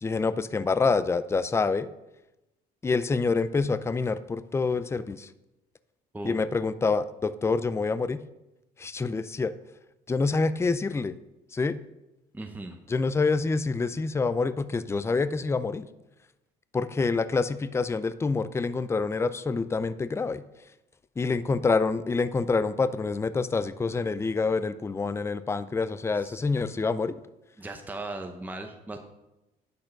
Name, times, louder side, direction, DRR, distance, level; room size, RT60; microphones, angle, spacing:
voice 1, 0.0-1.9 2.8-5.3 6.2-8.2 8.8-9.5 10.1-11.1 11.5-11.8 12.9-15.9 16.7-20.4 21.2-27.1, left 4 dB, 15° left, 14 dB, 0.5 m, -27 dB
voice 2, 6.1-6.5 12.3-12.8 26.1-26.4 27.6-29.0, right 2 dB, 10° right, 4 dB, 0.9 m, -38 dB
10.0 x 6.7 x 5.9 m, 0.95 s
cardioid pair, 110°, 17 cm